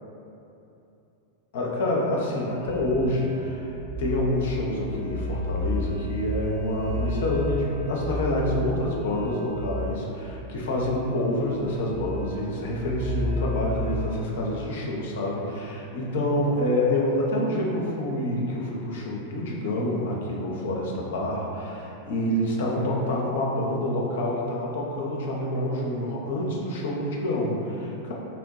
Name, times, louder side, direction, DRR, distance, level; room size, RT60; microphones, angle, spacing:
voice 1, 1.5-3.7 4.0-28.1, left 1 dB, 55° left, -3 dB, 0.5 m, -27 dB
sound 1, 2.0-14.0, left 1 dB, 40° right, 0.7 m, -33 dB
4.1 x 2.2 x 2.7 m, 2.9 s
figure-of-eight pair, 90°, 0 cm